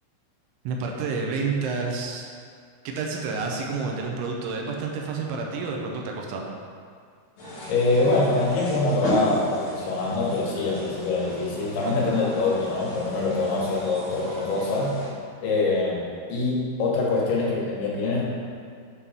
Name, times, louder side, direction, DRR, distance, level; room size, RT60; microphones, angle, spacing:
voice 1, 0.6-2.3 2.8-6.5, right 4 dB, 85° right, 0 dB, 3.1 m, -29 dB
sound 1, 7.4-15.1, equal, 50° left, 3.0 m, -35 dB
voice 2, 7.7-15.0 15.4-18.3, left 3 dB, 80° left, -4 dB, 3.4 m, -24 dB
8.1 x 3.8 x 5.8 m, 2.2 s
omnidirectional pair, 5.5 m